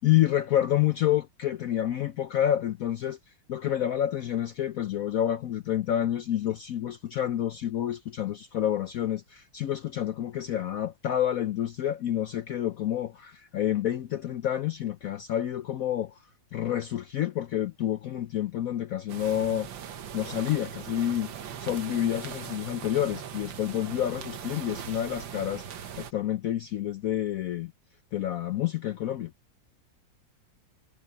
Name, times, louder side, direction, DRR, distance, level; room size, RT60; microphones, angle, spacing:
voice 1, 0.0-3.2 3.5-16.1 16.5-19.7 20.1-21.3 21.6-27.7 28.1-29.3, left 11 dB, 75° left, 0.8 m, -28 dB
sound 1, 19.1-26.1, right 8 dB, 70° right, 1.9 m, -40 dB
omnidirectional pair, 2.2 m